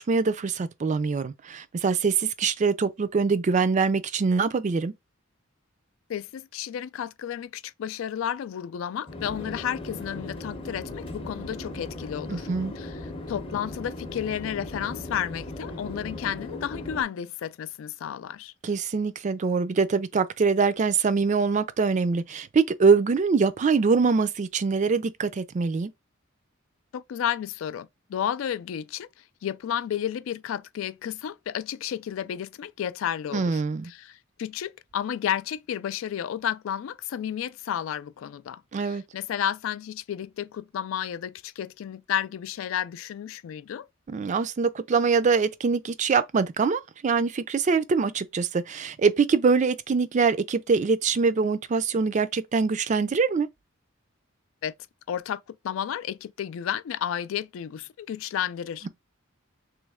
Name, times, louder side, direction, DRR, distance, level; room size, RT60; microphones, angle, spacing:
voice 1, 0.0-4.9 12.3-12.7 18.6-25.9 33.3-33.9 38.7-39.0 44.1-53.5, right 5 dB, 35° right, 0.4 m, -24 dB
voice 2, 6.1-12.5 12.8-13.0 13.3-18.5 26.9-29.1 29.4-43.9 54.6-54.7 55.1-58.9, left 9 dB, 70° left, 0.3 m, -32 dB
Conversation / Chatter / Fixed-wing aircraft airplane, 9.1-17.0, left 2 dB, 25° left, 0.7 m, -38 dB
3.1 x 3.0 x 3.5 m
head